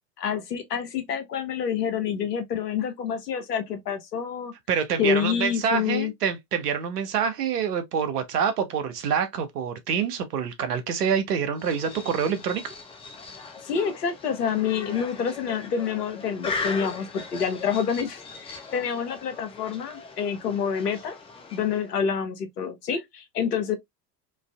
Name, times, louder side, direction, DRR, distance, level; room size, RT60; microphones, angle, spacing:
voice 1, 0.2-4.5 5.0-6.1 13.6-21.2 21.5-23.8, left 7 dB, 75° left, 0.8 m, -27 dB
voice 2, 4.7-12.7, right 7 dB, 75° right, 0.8 m, -26 dB
sound 1, 11.6-22.0, left 4 dB, 15° left, 0.4 m, -39 dB
3.0 x 2.5 x 2.3 m
figure-of-eight pair, 75°, 47 cm